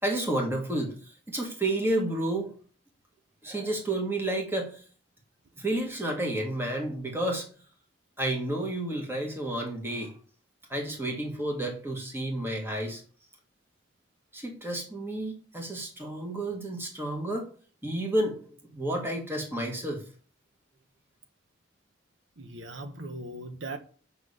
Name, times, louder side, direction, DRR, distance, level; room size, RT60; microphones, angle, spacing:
voice 1, 0.0-2.5 3.4-4.8 5.6-7.5 8.2-10.1 10.7-13.0 14.3-17.5 17.8-20.0, right 1 dB, 10° right, 1.9 m, -31 dB
voice 2, 22.4-23.8, right 2 dB, 70° right, 1.1 m, -39 dB
7.9 x 5.8 x 6.7 m
head